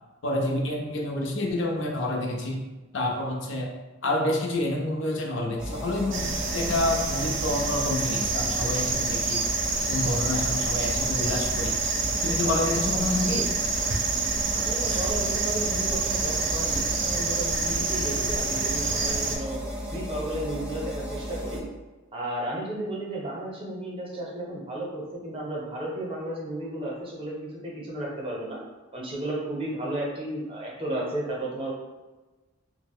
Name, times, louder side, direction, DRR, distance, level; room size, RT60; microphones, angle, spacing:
voice 1, 0.2-2.6 2.9-3.7 4.0-9.4 9.9-11.8 12.2-13.5 14.9-15.0, left 1 dB, 65° left, 1 dB, 0.5 m, -28 dB
sound 1, 5.6-21.6, equal, 5° right, 0.3 m, -35 dB
sound 2, 6.1-19.4, right 4 dB, 65° right, 0.5 m, -27 dB
voice 2, 14.5-19.6 19.9-21.6 22.1-28.6 28.9-31.7, right 1 dB, 25° right, -4 dB, 0.7 m, -33 dB
2.8 x 2.0 x 3.5 m, 1.2 s
head